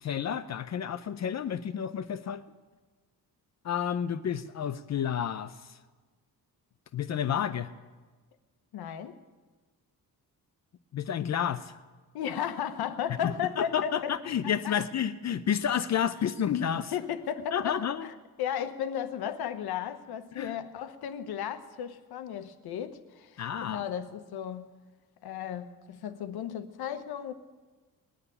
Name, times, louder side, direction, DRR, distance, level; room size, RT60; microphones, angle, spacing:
voice 1, 0.0-2.4 3.6-5.5 6.9-7.7 10.9-11.7 13.6-16.9 17.5-18.1 20.4-20.6 23.4-23.9, left 8 dB, 45° left, 0.6 m, -30 dB
voice 2, 8.7-9.2 12.1-14.8 16.9-24.7 25.2-27.3, left 9 dB, 85° left, 1.0 m, -35 dB
20.0 x 6.9 x 9.8 m
cardioid pair, 130°, 37 cm